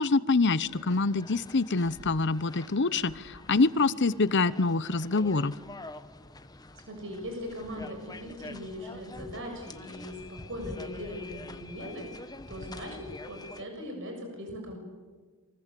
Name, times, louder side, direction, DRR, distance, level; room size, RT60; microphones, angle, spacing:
voice 1, 0.0-5.6, left 3 dB, 55° left, 16 dB, 0.9 m, -25 dB
sound 1, 0.7-13.6, left 2 dB, 20° left, 1.1 m, -46 dB
voice 2, 6.9-14.8, left 1 dB, 60° right, 3 dB, 6.9 m, -40 dB
29.5 x 24.0 x 8.5 m, 1.4 s
head